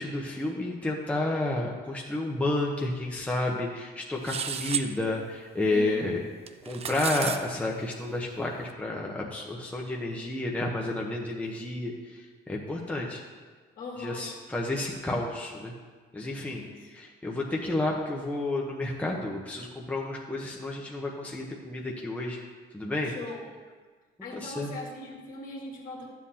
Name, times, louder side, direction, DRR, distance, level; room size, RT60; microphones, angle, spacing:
voice 1, 0.0-6.2 6.6-13.2 14.0-15.7 16.1-16.6 16.9-22.4 22.7-23.1 24.3-24.7, left 2 dB, 10° left, -2 dB, 0.9 m, -31 dB
sound 1, 4.2-4.9 6.5-7.4, right 7 dB, 35° right, 0.5 m, -32 dB
voice 2, 5.7-6.2 13.8-14.3 16.5-16.9 23.0-23.4 24.2-26.1, left 2 dB, 55° left, -2 dB, 2.0 m, -40 dB
11.0 x 7.5 x 2.9 m, 1.5 s
cardioid pair, 110°, 17 cm